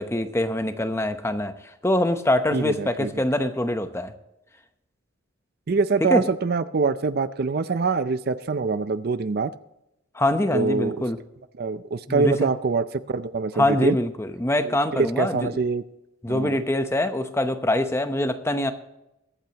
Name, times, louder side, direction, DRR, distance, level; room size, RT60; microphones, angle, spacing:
voice 1, 0.0-1.5 1.8-4.1 6.1-6.2 10.1-11.2 12.1-12.5 13.5-15.5 16.2-18.7, left 1 dB, 15° left, 8 dB, 0.9 m, -24 dB
voice 2, 2.5-3.2 5.7-9.5 10.5-11.0 11.6-14.0 14.6-15.8 16.3-16.6, right 4 dB, 50° right, 13 dB, 0.5 m, -24 dB
22.0 x 9.0 x 3.0 m, 0.90 s
head